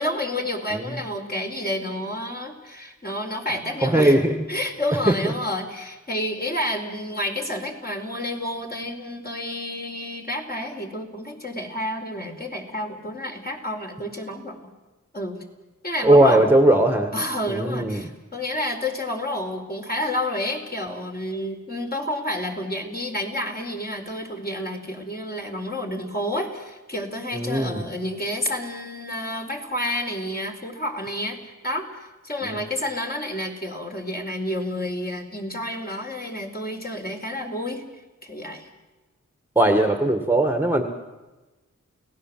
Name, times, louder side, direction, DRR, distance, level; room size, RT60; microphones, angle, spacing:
voice 1, 0.0-4.2 4.5-14.6 15.1-15.4 15.8-16.5 17.1-37.8 38.2-38.7, left 1 dB, 30° left, 1 dB, 4.4 m, -30 dB
voice 2, 3.8-4.3 5.1-5.3 16.0-17.1 17.5-18.1 27.3-27.8 32.4-32.6 39.6-40.8, right 1 dB, 5° right, 6 dB, 1.9 m, -19 dB
29.5 x 18.0 x 7.7 m, 1.1 s
wide cardioid pair, 60°, 32 cm